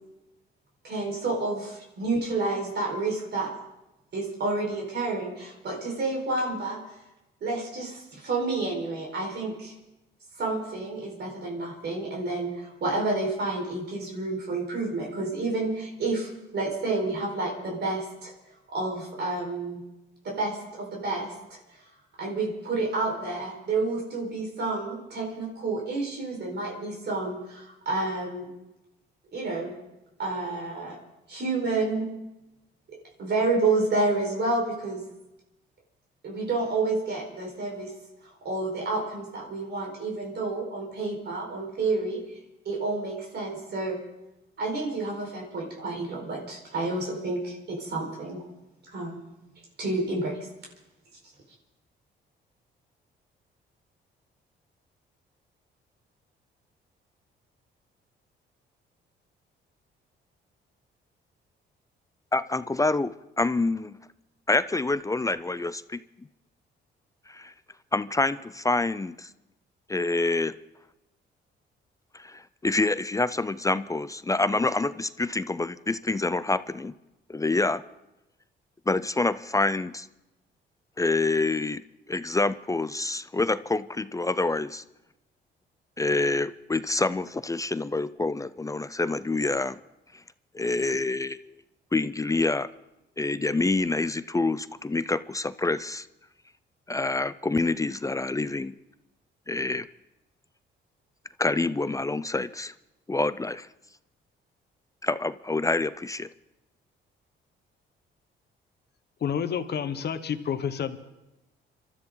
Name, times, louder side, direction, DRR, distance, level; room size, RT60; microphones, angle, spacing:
voice 1, 0.8-3.5 4.1-6.8 7.4-9.7 10.4-18.3 18.7-19.8 20.2-21.6 22.2-28.5 29.3-29.7 30.2-31.0 31.3-32.1 32.9-35.0 36.2-37.9 38.2-42.2 42.6-44.0 44.6-48.4 48.9-49.3 49.8-50.5, right 3 dB, 60° right, 0 dB, 4.7 m, -29 dB
voice 2, 62.3-64.0 64.5-66.3 67.3-67.5 67.9-69.3 69.9-70.6 72.1-76.9 77.3-77.8 78.9-80.1 81.0-84.8 86.0-89.8 90.5-91.6 91.9-92.7 93.2-96.1 96.9-98.7 99.5-99.9 101.4-102.7 103.1-103.7 105.0-106.3, left 3 dB, 15° left, 15 dB, 0.5 m, -27 dB
voice 3, 109.2-111.0, left 8 dB, 55° left, 10 dB, 1.3 m, -29 dB
26.5 x 13.0 x 3.9 m, 0.94 s
cardioid pair, 90°, 20 cm